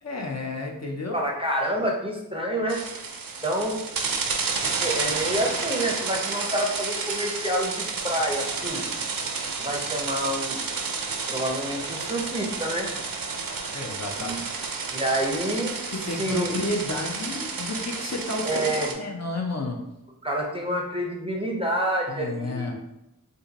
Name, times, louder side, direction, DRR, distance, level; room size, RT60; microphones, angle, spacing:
voice 1, 0.0-1.2 13.7-14.4 15.9-18.6 19.0-19.8 22.1-22.8, left 2 dB, 45° left, 1 dB, 0.6 m, -31 dB
voice 2, 1.1-2.8 3.4-3.8 4.5-8.8 9.6-10.6 11.3-12.9 14.2-14.4 14.9-15.7 16.2-16.5 18.4-18.9 20.2-22.8, right 1 dB, 15° right, -1 dB, 0.6 m, -28 dB
sound 1, 2.7-18.9, right 4 dB, 70° right, 0.5 m, -31 dB
2.6 x 2.5 x 3.9 m, 0.88 s
wide cardioid pair, 60°, 36 cm